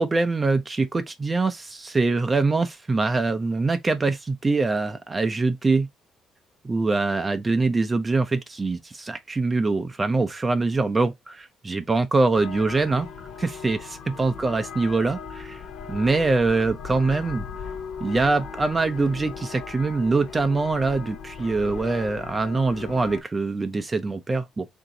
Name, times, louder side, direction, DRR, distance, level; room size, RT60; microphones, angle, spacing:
voice 1, 0.0-5.9 6.6-13.1 13.4-15.6 15.9-17.4 18.0-24.7, right 3 dB, 25° right, 0.5 m, -24 dB
sound 1, 12.3-23.2, left 6 dB, 70° left, 0.6 m, -38 dB
2.9 x 2.6 x 3.7 m
cardioid pair, 85°, 0 cm